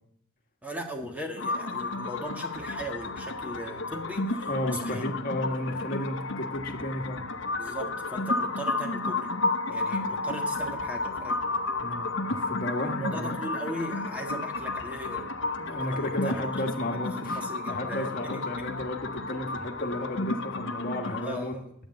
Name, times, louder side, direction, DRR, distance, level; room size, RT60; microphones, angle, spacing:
voice 1, 0.6-5.1 7.6-9.3 9.7-11.4 13.0-15.3 15.6-16.6 16.9-18.7 21.2-21.7, right 1 dB, 5° right, 2 dB, 1.7 m, -38 dB
sound 1, 1.4-21.3, left 2 dB, 65° left, 1.0 m, -32 dB
voice 2, 4.5-7.2 11.8-13.4 15.6-17.4 17.7-21.5, left 1 dB, 45° left, 3 dB, 1.7 m, -33 dB
12.5 x 9.2 x 7.9 m, 0.75 s
head